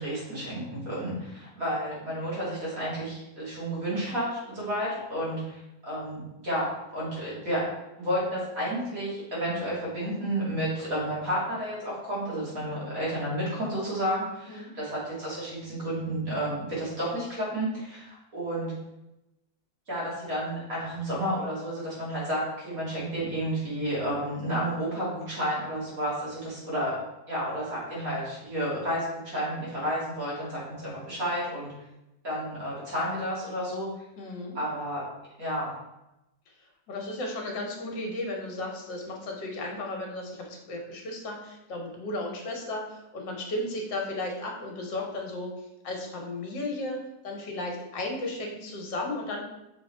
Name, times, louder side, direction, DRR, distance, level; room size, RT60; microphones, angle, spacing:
voice 1, 0.0-6.7 6.9-7.6 8.0-18.7 19.9-27.0 27.3-31.7 32.2-33.9 34.5-35.0 35.4-35.7, equal, 45° right, -7 dB, 2.8 m, -31 dB
voice 2, 34.2-34.6 36.9-45.5 45.8-49.4, left 2 dB, 70° left, 1 dB, 1.9 m, -34 dB
6.5 x 4.0 x 4.4 m, 0.93 s
omnidirectional pair, 2.0 m